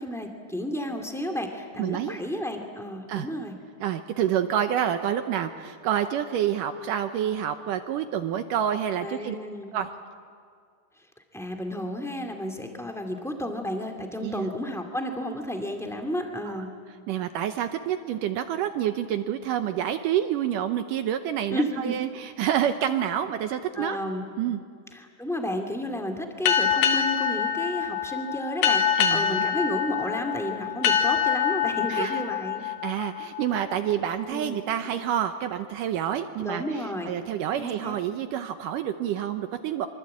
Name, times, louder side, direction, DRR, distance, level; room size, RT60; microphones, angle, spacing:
voice 1, 0.0-3.5 9.0-9.8 11.3-16.7 21.5-21.9 23.7-24.3 24.9-32.6 34.3-34.6 36.4-37.1 37.6-38.0, equal, 5° left, 4 dB, 0.4 m, -32 dB
voice 2, 1.8-2.2 3.1-3.3 3.8-9.4 9.7-9.9 14.2-14.5 16.5-16.6 17.1-24.0 24.4-24.6 29.0-29.5 31.9-32.2 32.6-39.9, right 10 dB, 80° right, 9 dB, 2.0 m, -28 dB
sound 1, 26.5-33.7, left 8 dB, 65° left, 2.2 m, -25 dB
25.0 x 25.0 x 8.6 m, 2.1 s
omnidirectional pair, 4.7 m